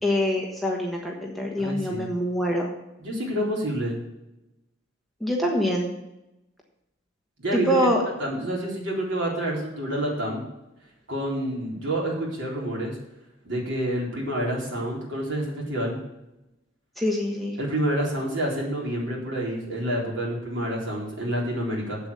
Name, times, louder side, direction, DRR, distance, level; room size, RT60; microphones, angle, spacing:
voice 1, 0.0-2.7 5.2-5.9 7.5-8.0 17.0-17.5, equal, ahead, -1 dB, 1.3 m, -25 dB
voice 2, 1.6-2.1 3.0-4.0 7.4-7.9 8.2-10.4 11.1-13.0 13.4-16.0 17.6-22.0, right 1 dB, 65° right, -3 dB, 3.9 m, -28 dB
8.1 x 7.9 x 6.8 m, 0.92 s
head